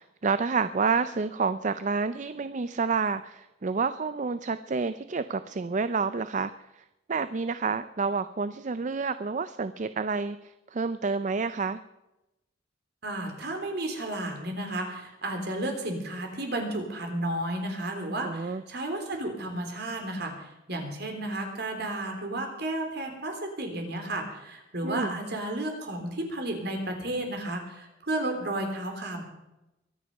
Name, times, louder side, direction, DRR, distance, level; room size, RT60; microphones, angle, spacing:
voice 1, 0.0-11.8 18.2-18.6 24.8-25.2, right 4 dB, 40° right, 13 dB, 0.5 m, -29 dB
voice 2, 13.0-29.2, right 1 dB, 60° right, 3 dB, 3.5 m, -33 dB
23.0 x 9.6 x 5.4 m, 0.94 s
head